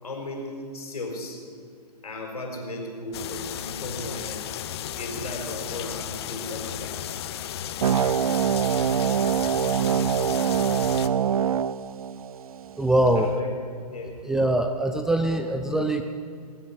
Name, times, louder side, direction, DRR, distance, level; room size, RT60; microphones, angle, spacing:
voice 1, 0.0-1.4 2.0-4.4 5.0-6.9 13.2-13.5 13.9-14.2, left 2 dB, 65° left, 1 dB, 4.4 m, -35 dB
sound 1, 3.1-11.1, left 10 dB, 40° left, 0.8 m, -34 dB
sound 2, 7.8-12.8, right 8 dB, 60° right, 0.5 m, -24 dB
voice 2, 12.8-13.3 14.2-16.0, right 1 dB, 5° right, 5 dB, 0.4 m, -23 dB
21.0 x 8.5 x 8.0 m, 2.2 s
figure-of-eight pair, 125°, 20 cm